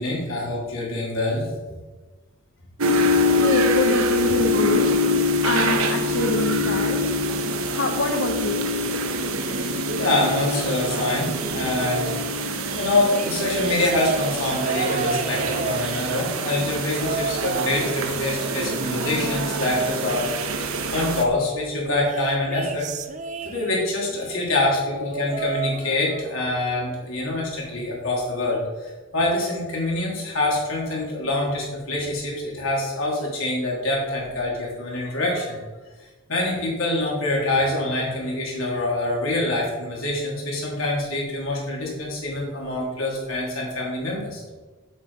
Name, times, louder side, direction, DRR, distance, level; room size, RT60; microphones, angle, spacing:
voice 1, 0.0-1.5 9.5-12.1 12.7-22.9 23.4-35.6 36.3-44.4, left 2 dB, 75° left, -4 dB, 3.4 m, -25 dB
sound 1, 2.8-21.3, left 1 dB, 85° right, 1.0 m, -25 dB
voice 2, 3.4-4.9 5.4-7.2 7.7-8.7, left 2 dB, 55° left, 2 dB, 0.8 m, -25 dB
sound 2, 13.1-16.4 16.9-17.9 18.2-19.8 21.8-24.0 24.9-26.4 26.7-27.1 28.2-28.3, right 5 dB, 35° right, 0.5 m, -32 dB
8.2 x 7.5 x 5.0 m, 1.3 s
head